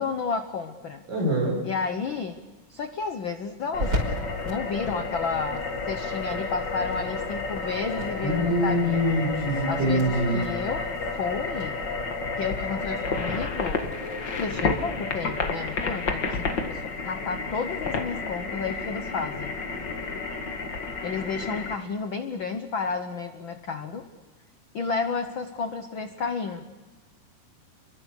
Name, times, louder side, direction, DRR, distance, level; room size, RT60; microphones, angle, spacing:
voice 1, 0.0-1.0 1.6-2.4 2.7-9.0 9.7-11.8 12.2-14.0 14.4-19.6 21.0-24.1 24.7-26.6, left 5 dB, 85° left, 8 dB, 1.1 m, -32 dB
voice 2, 1.1-1.6 8.2-10.4, equal, 75° right, -3 dB, 8.3 m, -24 dB
sound 1, 2.7-13.9, equal, 30° right, 5.4 m, -39 dB
sound 2, 3.7-21.7, left 4 dB, 40° left, 1.9 m, -31 dB
29.5 x 23.0 x 6.7 m, 1.3 s
omnidirectional pair, 3.9 m